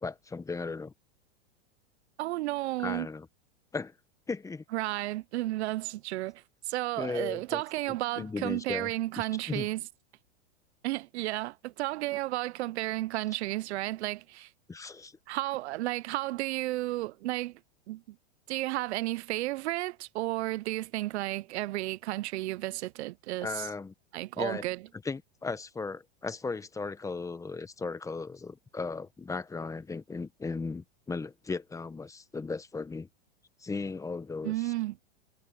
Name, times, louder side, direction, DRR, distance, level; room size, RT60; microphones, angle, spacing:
voice 1, 0.0-0.9 2.8-3.3 3.7-3.9 4.3-4.6 7.0-7.6 8.2-8.9 9.2-9.7 14.7-15.1 23.4-23.9 24.4-24.6 25.0-33.1 33.6-34.7, left 4 dB, 10° left, 1.0 m, -36 dB
voice 2, 2.2-3.1 4.7-9.8 10.8-14.5 15.3-17.6 17.9-18.2 18.5-23.7 24.1-24.8 34.4-35.0, right 17 dB, 75° right, 0.5 m, -33 dB
supercardioid pair, 130°, 33 cm